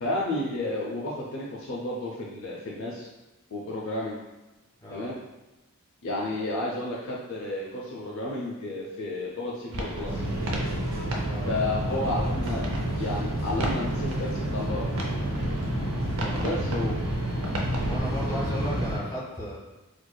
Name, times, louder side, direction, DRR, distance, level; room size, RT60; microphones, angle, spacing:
voice 1, 0.0-3.1 3.5-4.2 4.9-5.1 6.0-10.2 11.5-12.6 13.0-14.9 16.4-17.0, left 2 dB, 60° left, -4 dB, 0.5 m, -32 dB
sound 1, 9.7-18.0, right 1 dB, 70° right, 0.6 m, -36 dB
sound 2, 10.1-19.0, right 1 dB, 85° right, 1.1 m, -29 dB
voice 2, 17.9-19.6, left 1 dB, 15° left, -8 dB, 1.5 m, -35 dB
4.5 x 2.4 x 2.2 m, 1.0 s
head